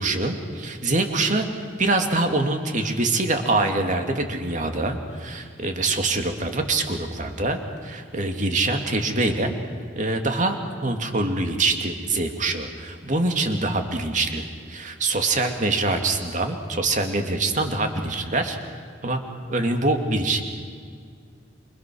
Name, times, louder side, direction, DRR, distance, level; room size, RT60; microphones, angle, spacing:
voice 1, 0.0-9.5 10.0-10.6 10.8-18.6 19.0-19.2 19.5-20.4, right 2 dB, 45° right, 5 dB, 2.5 m, -24 dB
28.0 x 25.5 x 6.4 m, 2.1 s
head